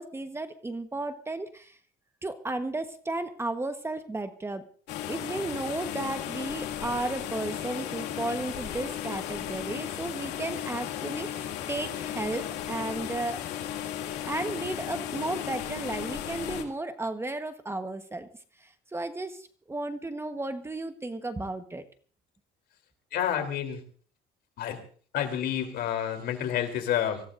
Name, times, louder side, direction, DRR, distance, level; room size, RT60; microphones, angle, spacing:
voice 1, 0.0-1.8 2.2-4.6 5.1-13.4 14.3-18.3 18.6-21.8, right 2 dB, 15° right, 8 dB, 1.2 m, -34 dB
sound 1, 4.9-16.6, left 10 dB, 90° left, 2.4 m, -35 dB
voice 2, 23.1-23.8 24.6-24.8 25.1-27.2, left 10 dB, 70° left, 5 dB, 3.5 m, -29 dB
25.0 x 16.0 x 2.6 m, 0.43 s
cardioid pair, 110°, 17 cm